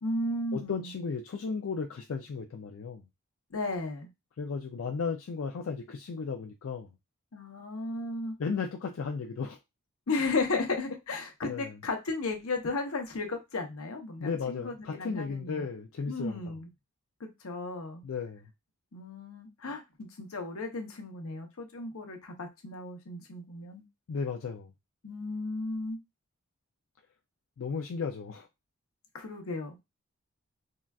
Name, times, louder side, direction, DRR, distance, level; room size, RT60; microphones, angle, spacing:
voice 1, 0.0-0.9 3.5-4.1 7.3-8.4 10.1-15.7 16.1-16.7 17.2-18.0 18.9-23.8 25.0-26.0 29.1-29.8, left 3 dB, 90° left, 0.8 m, -34 dB
voice 2, 0.5-3.0 4.4-6.9 8.4-9.6 11.4-11.8 14.2-16.6 18.0-18.4 24.1-24.7 27.6-28.5, left 5 dB, 70° left, 0.4 m, -35 dB
3.8 x 2.2 x 2.3 m
head